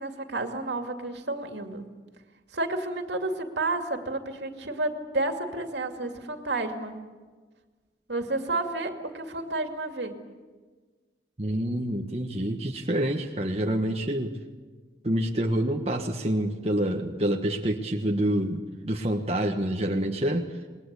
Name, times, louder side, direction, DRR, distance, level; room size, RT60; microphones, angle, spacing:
voice 1, 0.0-1.8 2.5-7.0 8.1-10.1, right 2 dB, 70° right, 5 dB, 2.6 m, -31 dB
voice 2, 11.4-14.3 15.0-20.5, right 1 dB, 35° right, 1 dB, 1.3 m, -27 dB
27.5 x 21.0 x 8.3 m, 1.4 s
head